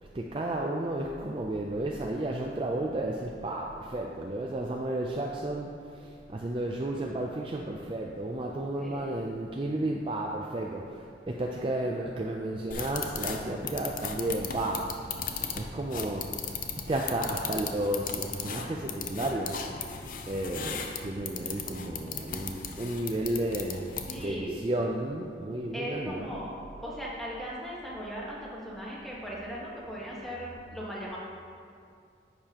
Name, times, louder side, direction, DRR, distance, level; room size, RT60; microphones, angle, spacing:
voice 1, 0.1-14.9 15.5-20.0 20.3-23.9 24.2-26.4, right 1 dB, 30° right, 0 dB, 0.4 m, -33 dB
voice 2, 8.8-9.2 24.1-24.5 25.7-26.5 26.8-31.2, equal, ahead, -6 dB, 1.3 m, -38 dB
sound 1, 12.7-24.4, left 6 dB, 50° left, 0.5 m, -37 dB
10.5 x 6.8 x 2.9 m, 2.4 s
head